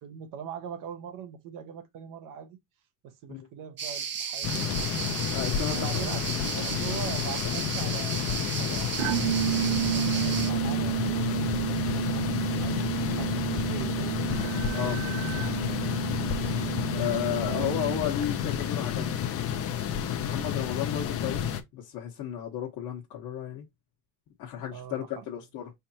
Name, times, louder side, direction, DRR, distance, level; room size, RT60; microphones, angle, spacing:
voice 1, 0.0-2.6 3.0-4.7 5.7-8.2 8.6-9.2 9.5-12.9 13.2-14.2 17.4-17.8 24.7-25.2, right 8 dB, 60° right, 1.0 m, -41 dB
sound 1, 3.8-10.5, right 7 dB, 30° right, 0.7 m, -34 dB
sound 2, 4.4-21.6, left 9 dB, 40° left, 0.7 m, -30 dB
voice 2, 5.3-5.8 14.7-15.2 16.9-19.4 20.0-21.4 21.7-23.6 24.4-25.7, left 10 dB, 55° left, 1.2 m, -33 dB
sound 3, 9.0-18.2, right 12 dB, 90° right, 0.7 m, -31 dB
5.1 x 3.5 x 2.8 m
cardioid pair, 145°, 37 cm